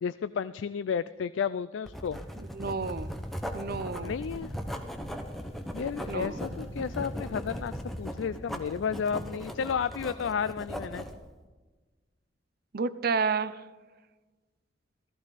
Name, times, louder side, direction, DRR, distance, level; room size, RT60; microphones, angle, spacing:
voice 1, 0.0-2.2 4.0-4.5 5.7-7.7 8.0-11.0, left 7 dB, 85° left, 14 dB, 0.4 m, -32 dB
Writing, 1.9-11.2, equal, ahead, 1.2 m, -38 dB
voice 2, 2.5-3.1 3.5-4.2 6.1-6.4 12.7-13.6, right 5 dB, 55° right, 14 dB, 0.6 m, -30 dB
sound 1, 2.8-8.1, equal, 35° left, 2.1 m, -49 dB
15.5 x 14.5 x 4.1 m, 1.3 s
head